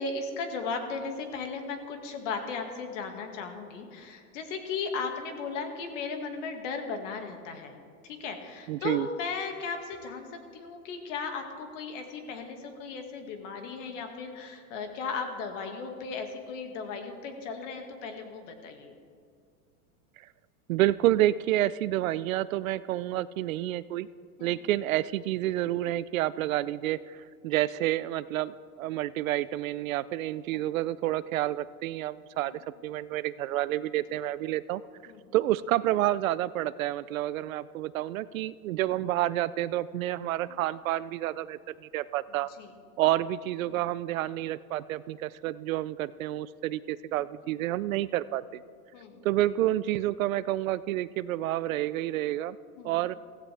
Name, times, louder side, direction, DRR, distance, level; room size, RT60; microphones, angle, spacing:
voice 1, 0.0-7.7 8.0-18.9 24.4-24.6 32.4-32.6 35.1-35.3 40.5-40.6 42.6-42.7 43.7-43.8 47.1-47.2 48.9-49.2 52.8-53.0, left 4 dB, 55° left, 5 dB, 2.1 m, -36 dB
voice 2, 8.7-9.1 20.2-20.3 20.7-24.1 24.4-32.5 32.8-34.8 35.3-42.5 43.0-48.6 49.2-52.6 52.8-53.2, right 14 dB, 65° right, 17 dB, 0.5 m, -29 dB
16.0 x 15.5 x 3.4 m, 2.3 s
supercardioid pair, 150°, 46 cm